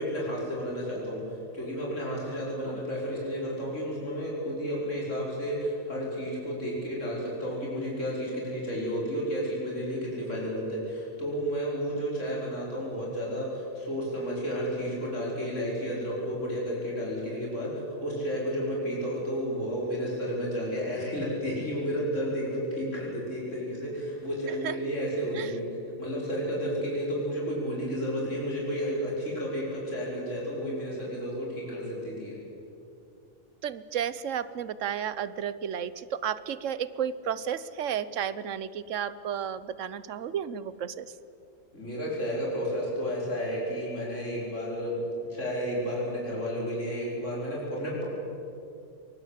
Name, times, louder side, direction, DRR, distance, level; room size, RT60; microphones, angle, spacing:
voice 1, 0.0-17.7 18.0-25.7 26.0-32.4 41.7-45.0 45.3-48.0, equal, 75° left, -4 dB, 5.6 m, -32 dB
voice 2, 33.6-41.1, right 8 dB, 80° right, 16 dB, 1.2 m, -32 dB
23.0 x 20.0 x 8.2 m, 2.6 s
omnidirectional pair, 1.3 m